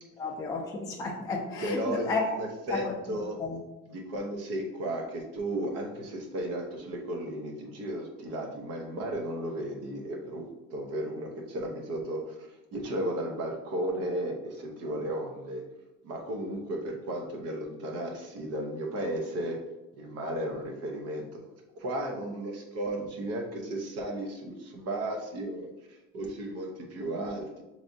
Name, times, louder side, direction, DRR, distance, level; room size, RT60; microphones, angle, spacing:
voice 1, 0.2-2.3 2.7-2.9 3.4-3.6, left 3 dB, 15° left, -2 dB, 0.4 m, -32 dB
voice 2, 1.6-3.4 3.9-15.6 16.0-19.6 19.9-21.4 21.8-27.6, right 1 dB, 55° right, 2 dB, 0.9 m, -34 dB
6.1 x 3.2 x 2.7 m, 1.0 s
cardioid pair, 155°, 29 cm